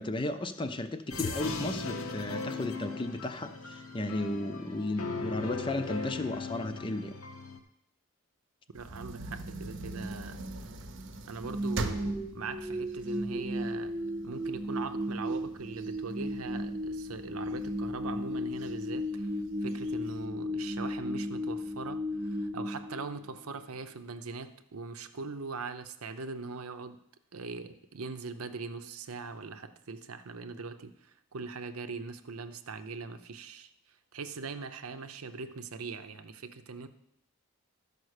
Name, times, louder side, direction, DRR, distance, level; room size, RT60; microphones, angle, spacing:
voice 1, 0.0-7.2, left 2 dB, 25° left, 9 dB, 0.5 m, -34 dB
sound 1, 1.1-7.6, left 3 dB, 75° left, 0.9 m, -38 dB
voice 2, 8.7-10.7 11.3-13.9 14.2-27.0 27.3-33.7 34.1-36.9, right 4 dB, 90° right, 9 dB, 0.7 m, -41 dB
sound 2, 8.8-13.9 14.4-14.5 14.9-16.9 17.5-18.0 18.6-18.7 19.0-19.1 19.6-20.2, right 2 dB, 60° right, 0.8 m, -40 dB
sound 3, 11.4-23.6, equal, 25° right, 0.6 m, -35 dB
12.5 x 5.2 x 6.5 m, 0.79 s
head